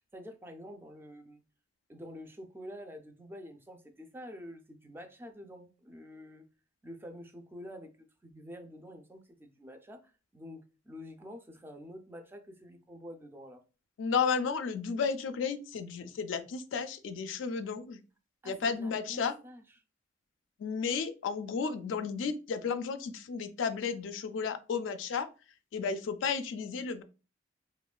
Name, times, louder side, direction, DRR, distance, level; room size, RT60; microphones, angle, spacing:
voice 1, 0.1-1.4 1.9-6.4 6.8-13.6 18.4-19.6, equal, 10° right, 0.3 m, -48 dB
voice 2, 14.0-18.0 18.4-19.3 20.6-25.3 25.7-27.0, left 5 dB, 85° left, 0.3 m, -33 dB
2.9 x 2.1 x 2.3 m
head